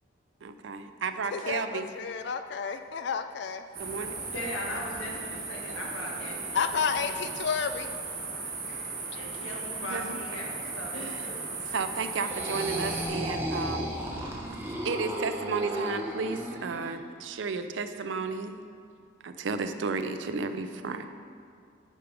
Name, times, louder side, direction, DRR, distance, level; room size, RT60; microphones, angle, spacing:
voice 1, 0.4-1.9 3.8-4.2 9.8-10.4 10.9-11.3 11.7-13.9 14.2-14.3 14.8-18.6 19.2-21.0, right 4 dB, 70° right, 9 dB, 0.5 m, -33 dB
voice 2, 1.3-3.6 6.5-7.9, left 6 dB, 60° left, 9 dB, 0.3 m, -31 dB
sound 1, 3.7-13.1, right 3 dB, 50° right, 1.6 m, -37 dB
voice 3, 4.3-7.3 9.1-11.4, left 1 dB, 90° left, -2 dB, 1.6 m, -39 dB
sound 2, 12.1-16.9, right 1 dB, 10° right, 0.9 m, -34 dB
9.1 x 5.1 x 4.8 m, 2.3 s
head